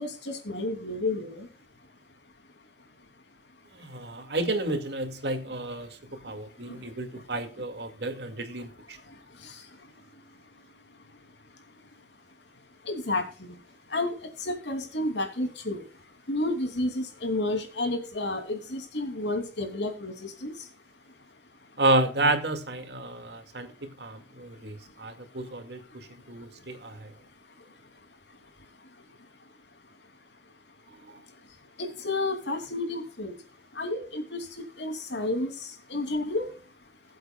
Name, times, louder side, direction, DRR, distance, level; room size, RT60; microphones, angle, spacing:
voice 1, 0.0-1.5 9.4-9.5 12.9-13.6 13.9-14.1 14.4-15.8 16.3-20.5 31.8-33.3 33.8-34.4 34.8-35.5 35.9-36.5, left 2 dB, 85° left, 3.0 m, -31 dB
voice 2, 3.7-6.0 6.2-9.0 21.8-27.1 31.1-31.2, right 2 dB, 70° right, 2.2 m, -31 dB
21.0 x 7.9 x 2.3 m
head